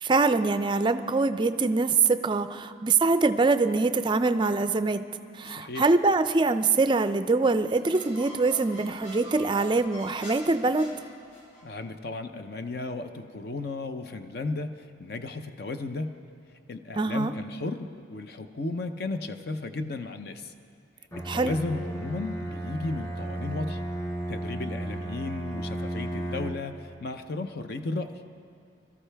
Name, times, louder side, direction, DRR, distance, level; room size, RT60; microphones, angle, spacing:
voice 1, 0.0-5.0 5.3-10.9 17.0-17.3 21.3-21.6, right 3 dB, 25° right, 11 dB, 0.4 m, -24 dB
voice 2, 5.4-5.9 11.6-16.2 16.7-20.5 21.3-23.8 24.3-28.2, left 3 dB, 55° left, 8 dB, 0.6 m, -34 dB
sound 1, 7.6-11.6, right 1 dB, 85° left, 4.4 m, -45 dB
Bowed string instrument, 21.1-26.8, right 1 dB, 15° left, 1.0 m, -34 dB
22.5 x 13.5 x 3.4 m, 2.3 s
head